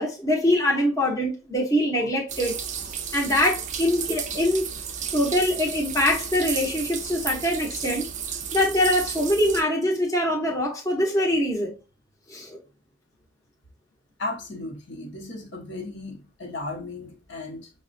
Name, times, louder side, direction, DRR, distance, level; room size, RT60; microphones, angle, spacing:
voice 1, 0.0-2.5 3.1-4.6 5.1-8.1 8.5-11.7 12.3-12.6, left 1 dB, 15° left, 0.7 m, -23 dB
sound 1, 2.3-9.6, right 7 dB, 35° right, 0.4 m, -33 dB
voice 2, 14.2-17.7, left 2 dB, 60° left, 0.9 m, -35 dB
5.9 x 2.1 x 2.5 m
head